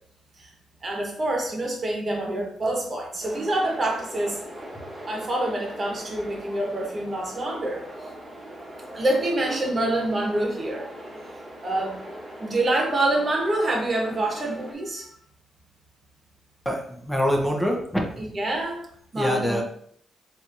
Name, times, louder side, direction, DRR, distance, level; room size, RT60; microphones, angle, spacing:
voice 1, 0.8-4.4 5.1-7.9 8.9-10.9 11.6-12.0 12.4-15.1 18.2-18.8 19.1-19.6, right 1 dB, 40° right, 0 dB, 1.2 m, -26 dB
sound 1, 3.2-14.7, right 1 dB, 15° right, 1.3 m, -40 dB
voice 2, 16.6-18.3 19.1-19.6, equal, 5° left, 0 dB, 0.9 m, -25 dB
4.2 x 2.7 x 2.6 m, 0.63 s
cardioid pair, 75°, 0 cm